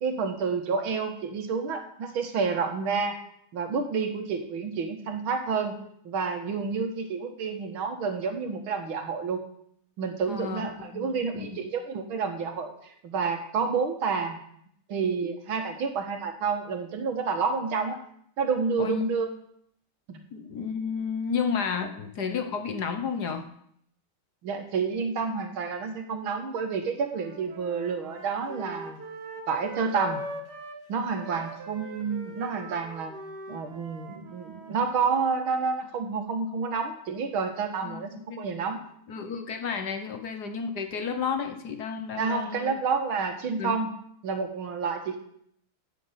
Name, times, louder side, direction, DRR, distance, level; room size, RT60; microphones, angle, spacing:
voice 1, 0.0-3.2 3.5-5.8 6.1-9.4 10.0-12.7 13.0-14.4 14.9-18.0 18.4-19.3 20.1-20.2 24.4-29.0 29.5-30.2 30.9-33.1 33.5-38.8 42.2-43.9 44.2-45.2, right 5 dB, 80° right, 5 dB, 2.3 m, -29 dB
voice 2, 10.3-10.6 10.9-11.6 18.8-19.1 20.3-23.5 37.8-38.4 39.1-42.8 43.6-43.8, left 6 dB, 55° left, 6 dB, 1.6 m, -32 dB
sound 1, 26.9-30.8 31.1-35.5, right 1 dB, 55° right, 2.0 m, -42 dB
9.6 x 8.2 x 8.1 m, 0.69 s
omnidirectional pair, 2.2 m